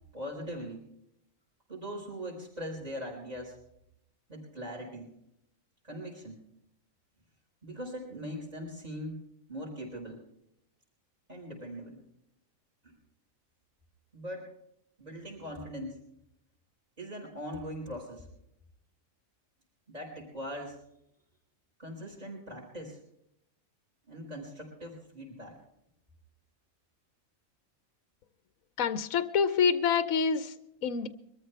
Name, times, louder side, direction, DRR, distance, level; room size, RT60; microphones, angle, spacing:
voice 1, 0.1-0.8 1.7-3.6 4.3-5.1 5.8-6.4 7.6-9.2 9.5-10.2 11.3-12.0 12.8-13.0 14.1-14.5 15.0-16.0 17.0-18.3 19.9-20.8 21.8-23.0 24.1-25.6, equal, 30° right, -4 dB, 5.0 m, -40 dB
voice 2, 28.8-30.5 30.8-31.1, left 6 dB, 80° left, 11 dB, 1.2 m, -26 dB
23.5 x 14.0 x 3.4 m, 0.77 s
omnidirectional pair, 1.4 m